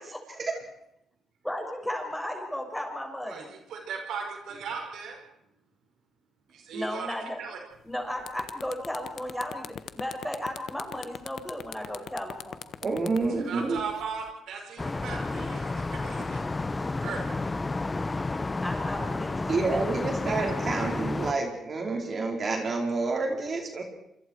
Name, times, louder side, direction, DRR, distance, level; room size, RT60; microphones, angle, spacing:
voice 1, 1.4-3.5 6.7-7.4 7.8-12.7 18.6-20.3, left 1 dB, 5° left, 2 dB, 6.6 m, -35 dB
voice 2, 3.7-5.2 6.5-7.6 13.5-16.5 17.0-17.4, right 5 dB, 75° right, 2 dB, 5.6 m, -37 dB
sound 1, 7.8-7.9 8.2-14.3, left 9 dB, 65° left, 1.3 m, -41 dB
voice 3, 12.8-13.8 19.5-23.8, right 3 dB, 45° right, 2 dB, 4.7 m, -28 dB
sound 2, 14.8-21.3, left 3 dB, 20° left, 0.9 m, -31 dB
27.5 x 26.0 x 4.7 m, 0.80 s
cardioid pair, 90°, 0 cm